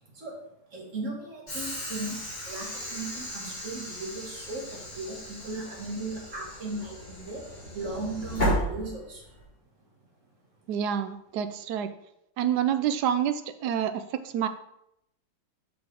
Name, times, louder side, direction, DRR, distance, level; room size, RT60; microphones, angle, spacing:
voice 1, 0.1-7.4 7.7-9.2, right 3 dB, 40° right, -2 dB, 2.1 m, -37 dB
Train / Sliding door, 1.5-9.4, equal, 30° left, 3.6 m, -35 dB
voice 2, 10.7-11.9 12.4-14.5, right 9 dB, 75° right, 11 dB, 1.0 m, -28 dB
6.2 x 6.0 x 4.8 m, 0.79 s
omnidirectional pair, 2.1 m